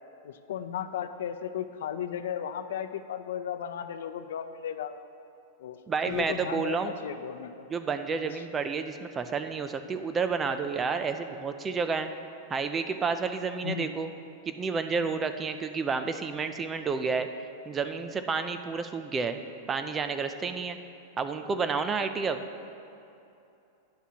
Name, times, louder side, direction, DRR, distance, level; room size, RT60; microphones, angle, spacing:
voice 1, 0.2-4.9 5.6-5.8 6.1-7.7 13.6-13.9, left 9 dB, 75° left, 10 dB, 0.5 m, -35 dB
voice 2, 5.9-6.9 7.7-12.1 12.5-14.1 14.5-17.3 17.7-19.4 19.7-20.8 21.2-22.4, right 5 dB, 15° right, 9 dB, 0.3 m, -30 dB
sound 1, 6.0-7.3, left 3 dB, 15° left, 0.9 m, -52 dB
12.0 x 9.6 x 2.8 m, 2.7 s
supercardioid pair, 165°, 0 cm